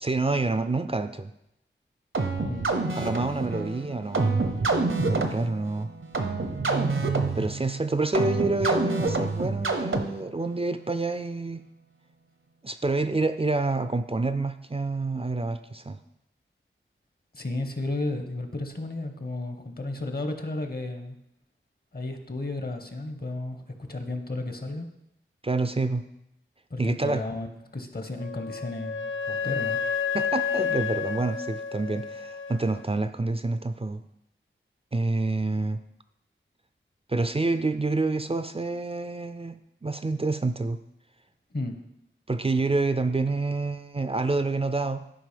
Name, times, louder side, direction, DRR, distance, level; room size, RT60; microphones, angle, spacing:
voice 1, 0.0-1.3 3.0-4.6 5.1-5.9 7.3-11.6 12.6-16.0 25.4-26.0 26.8-27.2 30.1-34.0 34.9-35.8 37.1-40.8 42.3-45.1, right 3 dB, 30° right, 10 dB, 0.4 m, -28 dB
sound 1, 2.1-10.4, right 3 dB, 75° right, 0.9 m, -27 dB
voice 2, 2.4-2.8 17.3-21.2 21.9-23.6 23.9-24.9 26.7-27.5 27.7-29.8 41.5-41.8, left 2 dB, 50° left, 6 dB, 1.2 m, -33 dB
Wind instrument woodwind instrument, 28.2-32.8, left 6 dB, 70° left, 0.6 m, -30 dB
11.5 x 5.0 x 5.2 m, 0.82 s
wide cardioid pair, 60°, 21 cm